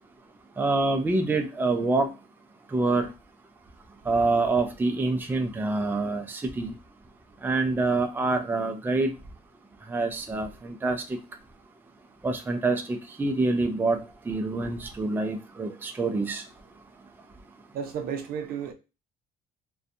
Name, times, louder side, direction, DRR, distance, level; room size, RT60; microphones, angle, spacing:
voice 1, 0.6-2.1 2.7-3.1 4.1-6.7 7.4-9.1 9.9-11.0 12.2-14.0 14.3-16.4, right 3 dB, 10° right, 0.4 m, -26 dB
voice 2, 17.7-18.7, right 7 dB, 65° right, 0.6 m, -32 dB
2.5 x 2.2 x 2.5 m
cardioid pair, 110°, 17 cm